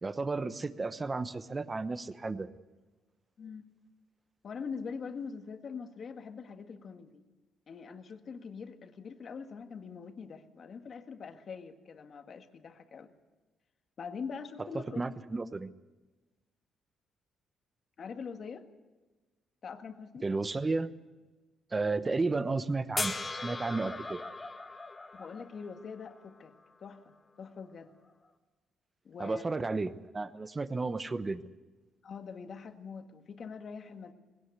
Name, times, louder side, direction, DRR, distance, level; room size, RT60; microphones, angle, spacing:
voice 1, 0.0-2.5 15.0-15.7 20.2-20.9 21.7-24.2 29.2-31.4, right 3 dB, 25° right, 13 dB, 1.0 m, -33 dB
voice 2, 4.4-7.2 7.7-13.1 14.0-15.2 18.0-18.7 19.6-20.3 25.1-26.6 26.8-27.9 29.0-29.4 32.0-34.1, left 5 dB, 50° left, 7 dB, 1.7 m, -43 dB
sound 1, 23.0-26.2 28.2-28.3, left 2 dB, 20° left, 1.8 m, -38 dB
20.0 x 17.5 x 8.2 m, 1.2 s
cardioid pair, 90°, 0 cm